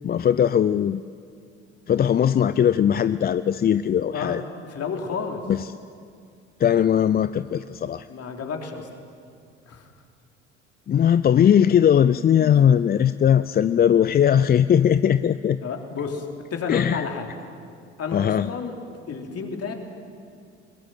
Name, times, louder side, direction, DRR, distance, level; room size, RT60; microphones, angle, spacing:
voice 1, 0.0-1.0 1.9-4.4 5.5-5.6 6.6-8.1 10.9-15.6 16.7-17.0 18.1-18.5, left 9 dB, 25° left, 14 dB, 0.5 m, -19 dB
voice 2, 4.7-5.4 8.1-8.9 9.6-9.9 12.4-12.5 15.6-17.3 18.0-18.8 19.1-19.8, left 5 dB, 45° left, 3 dB, 3.6 m, -31 dB
22.5 x 20.0 x 9.2 m, 2.3 s
figure-of-eight pair, 55°, 35 cm